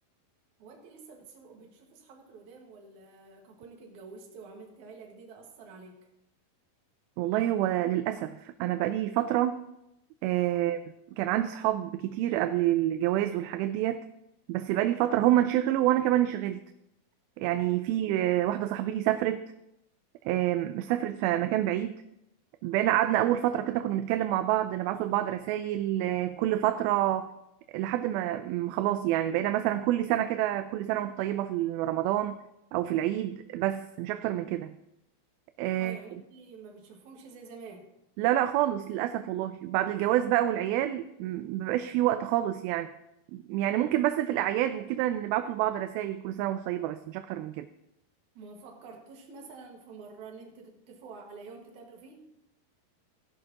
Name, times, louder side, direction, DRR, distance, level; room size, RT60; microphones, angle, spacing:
voice 1, 0.6-6.0 35.7-37.9 48.3-52.3, right 4 dB, 55° right, 0 dB, 2.9 m, -48 dB
voice 2, 7.2-9.6 10.2-10.8 11.1-14.1 14.5-16.6 17.4-19.5 20.3-22.0 22.6-27.3 27.7-32.4 32.7-34.7 35.6-36.0 38.2-42.9 43.3-47.7, right 13 dB, 85° right, 9 dB, 2.4 m, -28 dB
15.5 x 11.0 x 2.9 m, 0.85 s
omnidirectional pair, 4.3 m